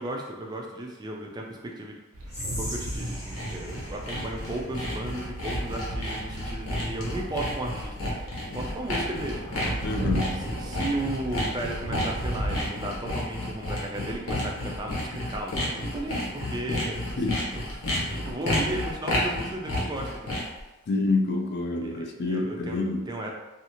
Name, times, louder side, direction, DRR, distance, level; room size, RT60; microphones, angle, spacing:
voice 1, 0.0-2.0 2.5-9.8 10.6-17.6 18.1-20.4 21.8-23.3, right 1 dB, 20° right, 0 dB, 0.3 m, -35 dB
sound 1, 2.1-12.7, right 1 dB, 75° right, 0.6 m, -35 dB
Whispering, 2.3-5.5, left 1 dB, 15° left, 0.9 m, -41 dB
Sawing, 2.8-20.6, left 1 dB, 75° left, 0.8 m, -31 dB
voice 2, 9.8-10.4 17.2-17.5 20.9-23.1, left 3 dB, 50° left, 3 dB, 0.3 m, -27 dB
2.6 x 2.4 x 2.8 m, 1.1 s
head